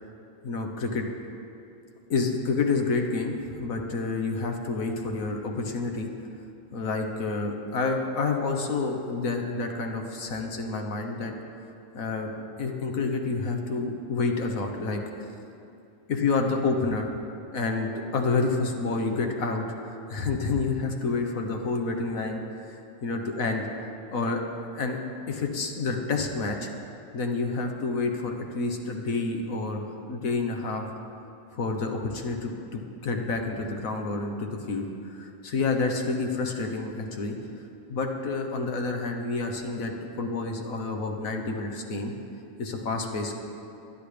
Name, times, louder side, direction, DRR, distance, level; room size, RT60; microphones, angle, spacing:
voice 1, 0.4-1.1 2.1-6.1 6.7-11.3 11.9-12.3 12.6-15.0 16.1-17.1 17.5-23.6 24.1-24.4 24.7-25.0 25.3-26.7 27.1-30.9 31.5-37.4 37.9-42.1 42.6-43.3, left 3 dB, 85° left, 3 dB, 1.6 m, -29 dB
23.0 x 10.5 x 3.4 m, 2.7 s
omnidirectional pair, 1.4 m